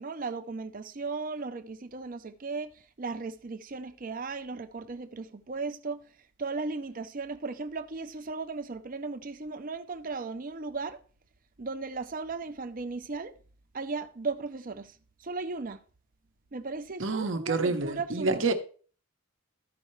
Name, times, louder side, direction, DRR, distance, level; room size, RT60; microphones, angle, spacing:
voice 1, 0.0-6.1 6.4-11.0 11.6-13.3 13.7-15.8 16.5-18.5, right 4 dB, 40° right, 0.6 m, -36 dB
voice 2, 17.0-18.5, right 3 dB, 65° right, 1.0 m, -28 dB
13.5 x 5.5 x 3.2 m
head